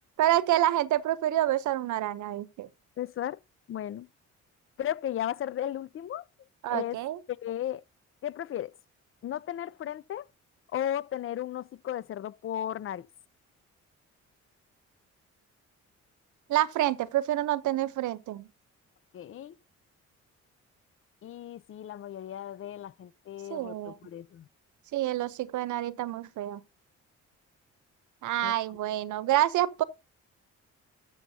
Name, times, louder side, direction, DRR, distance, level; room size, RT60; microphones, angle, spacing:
voice 1, 0.2-2.7 6.6-7.2 16.5-18.5 23.5-24.0 24.9-26.6 28.2-29.8, right 13 dB, 80° right, 0.9 m, -27 dB
voice 2, 3.0-3.4 3.7-4.1 4.8-6.3 6.7-7.0 7.4-7.8 8.2-8.7 9.2-10.2 10.7-13.1 19.1-19.6 21.2-24.5 28.4-28.5, left 11 dB, 45° left, 0.5 m, -35 dB
13.0 x 6.9 x 2.8 m
cardioid pair, 90°, 30 cm